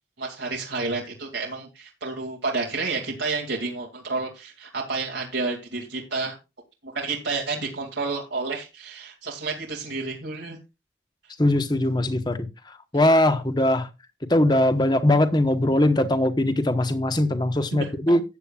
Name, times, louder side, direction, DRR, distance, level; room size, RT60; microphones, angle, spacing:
voice 1, 0.2-6.4 6.8-10.6 17.7-17.9, right 3 dB, 90° right, 2.4 m, -30 dB
voice 2, 11.4-13.9 14.3-18.2, left 1 dB, 25° left, 1.1 m, -21 dB
14.5 x 9.0 x 2.4 m
head